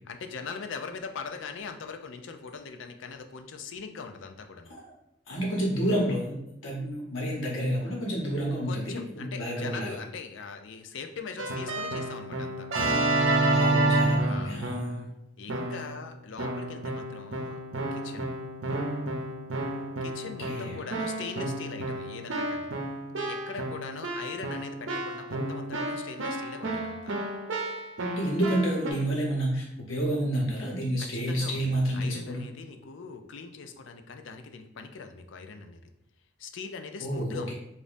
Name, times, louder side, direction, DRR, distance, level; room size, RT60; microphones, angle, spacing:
voice 1, 0.1-4.7 8.7-12.7 14.2-14.6 15.4-17.6 17.9-18.3 20.0-22.7 23.3-27.1 31.0-35.9 36.4-37.5, left 5 dB, 70° left, 6 dB, 0.4 m, -41 dB
voice 2, 5.3-6.4 6.6-10.0 13.5-15.1 20.2-20.8 28.1-32.4 37.0-37.5, right 1 dB, 90° left, -2 dB, 1.1 m, -29 dB
Keyboard (musical), 11.4-15.0 15.5-16.0 16.4-28.9, right 2 dB, 75° right, 0.7 m, -30 dB
5.1 x 2.6 x 2.6 m, 0.83 s
head